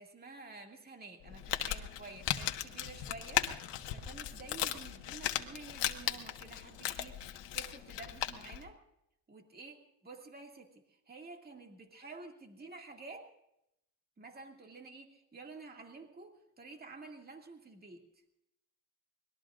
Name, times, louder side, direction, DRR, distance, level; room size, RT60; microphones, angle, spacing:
voice 1, 0.0-3.5 3.9-8.8 9.3-13.3 14.2-18.0, right 3 dB, 20° right, 2 dB, 2.2 m, -50 dB
Crumpling crinkling, 1.2-8.6, left 11 dB, 75° left, 1.5 m, -37 dB
25.0 x 20.5 x 2.5 m, 0.81 s
cardioid pair, 140°, 43 cm